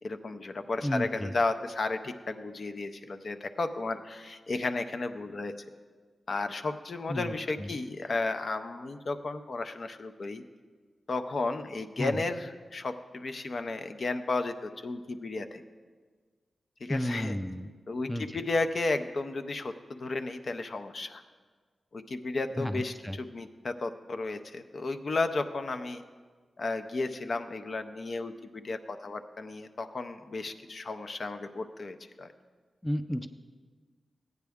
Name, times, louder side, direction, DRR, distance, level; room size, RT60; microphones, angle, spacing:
voice 1, 0.0-5.5 6.3-10.4 11.1-15.6 16.8-17.4 17.9-21.2 21.9-26.0 26.6-32.3, left 3 dB, 55° left, 8 dB, 0.5 m, -33 dB
voice 2, 0.8-1.3 7.1-7.3 7.6-7.8 12.0-12.1 16.9-17.7 18.1-18.4 22.6-23.2 32.8-33.3, equal, 5° left, 8 dB, 0.4 m, -32 dB
15.0 x 9.4 x 3.5 m, 1.5 s
wide cardioid pair, 110°, 0 cm